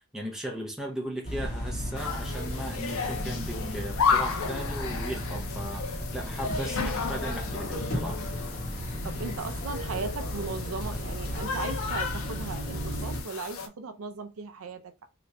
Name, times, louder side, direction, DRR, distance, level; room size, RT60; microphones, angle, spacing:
voice 1, 0.1-8.2, right 1 dB, ahead, 0.7 m, -37 dB
sound 1, 1.2-13.2, equal, 35° left, 0.9 m, -35 dB
sound 2, 1.9-13.7, left 5 dB, 65° left, 0.5 m, -33 dB
voice 2, 9.0-15.0, right 4 dB, 65° right, 0.5 m, -37 dB
2.9 x 2.5 x 3.2 m
head